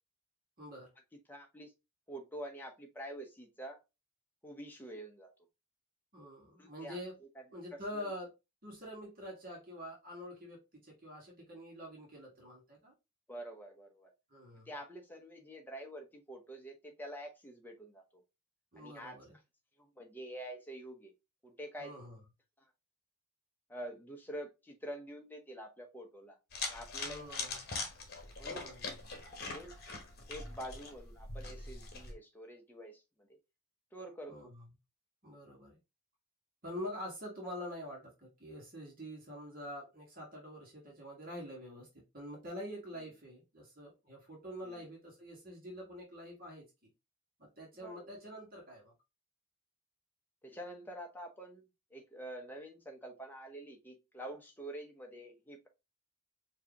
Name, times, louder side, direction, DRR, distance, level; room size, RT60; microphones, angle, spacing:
voice 1, 0.6-0.9 6.1-7.2 7.5-8.3 8.6-12.9 14.3-14.7 18.7-19.4 21.8-22.2 27.0-27.7 28.5-29.3 34.3-34.7 35.2-35.8 36.6-41.9 42.1-46.6 47.6-48.9, equal, 40° right, 1.5 m, -46 dB
voice 2, 1.3-1.7 2.1-3.8 4.4-5.3 6.6-7.0 7.9-8.1 13.3-14.1 14.7-18.2 18.8-19.2 19.8-21.1 21.4-21.9 23.7-26.4 26.7-27.2 28.4-28.7 29.5-29.7 30.3-33.0 33.9-34.4 44.6-44.9 47.8-48.1 50.4-51.6 51.9-55.7, right 1 dB, 10° left, 0.7 m, -47 dB
sound 1, 26.5-32.1, left 3 dB, 45° left, 1.0 m, -42 dB
4.6 x 2.8 x 2.9 m
head